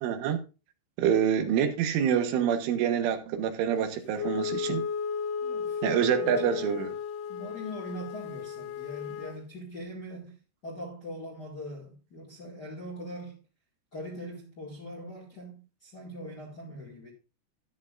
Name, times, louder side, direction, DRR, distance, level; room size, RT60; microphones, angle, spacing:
voice 1, 0.0-0.4 1.0-4.8 5.8-6.9, right 8 dB, 85° right, 3.7 m, -26 dB
Wind instrument woodwind instrument, 4.1-9.4, left 6 dB, 70° left, 2.3 m, -34 dB
voice 2, 5.4-6.7 7.3-10.4 10.6-13.4 13.9-17.1, equal, 45° left, 1.3 m, -42 dB
13.0 x 11.0 x 2.5 m
omnidirectional pair, 5.4 m